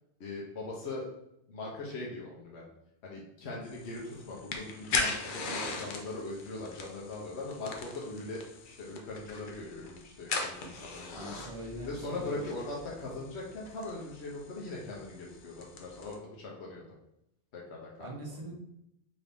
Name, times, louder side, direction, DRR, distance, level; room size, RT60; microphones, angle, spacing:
voice 1, 0.2-1.1 1.5-2.7 3.0-11.4 11.8-16.9 17.5-18.2, left 2 dB, 70° left, -4 dB, 1.1 m, -40 dB
sound 1, 3.7-16.2, left 3 dB, 55° left, 0.7 m, -39 dB
voice 2, 11.1-12.6 18.0-18.5, right 1 dB, 35° right, 0 dB, 0.6 m, -42 dB
3.9 x 2.7 x 3.4 m, 0.81 s
omnidirectional pair, 1.2 m